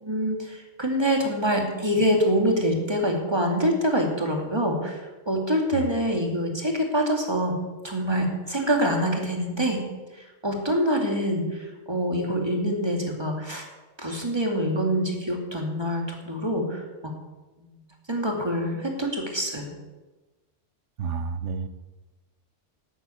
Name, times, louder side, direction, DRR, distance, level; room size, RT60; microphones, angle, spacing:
voice 1, 0.0-7.5 7.8-9.8 10.2-13.7 14.0-17.1 17.6-17.8 18.1-19.7, equal, 20° right, 1 dB, 2.4 m, -25 dB
voice 2, 21.0-21.7, right 5 dB, 75° right, 11 dB, 1.2 m, -30 dB
12.0 x 9.0 x 8.5 m, 1.2 s
omnidirectional pair, 1.2 m